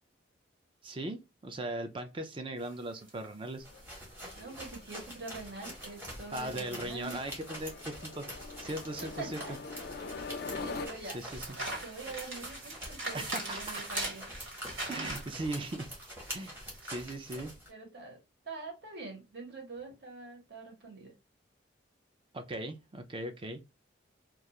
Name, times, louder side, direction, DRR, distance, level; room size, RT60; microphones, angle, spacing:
voice 1, 0.8-3.7 6.3-9.4 11.1-11.5 13.1-13.8 14.9-15.9 16.3-17.5 22.3-23.6, right 1 dB, 25° right, 0.4 m, -39 dB
sound 1, 2.6-17.0, right 2 dB, 85° right, 1.6 m, -43 dB
sound 2, 3.6-10.9, left 4 dB, 50° left, 0.3 m, -44 dB
sound 3, 3.6-17.7, equal, 10° right, 0.9 m, -46 dB
voice 2, 4.3-7.2 9.0-9.6 10.2-11.2 11.8-14.2 17.7-18.2 18.4-21.1, right 3 dB, 55° right, 1.1 m, -44 dB
2.3 x 2.3 x 2.8 m
head